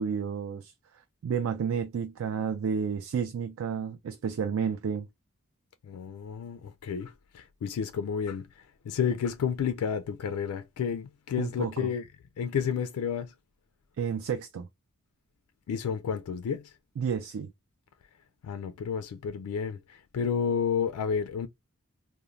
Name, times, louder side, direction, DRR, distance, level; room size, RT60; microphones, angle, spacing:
voice 1, 0.0-5.1 11.4-11.9 14.0-14.7 17.0-17.5, right 7 dB, 60° right, 0.3 m, -31 dB
voice 2, 5.8-12.0 12.4-13.3 15.7-16.7 18.4-21.5, left 7 dB, 80° left, 0.3 m, -31 dB
3.0 x 2.1 x 2.4 m
head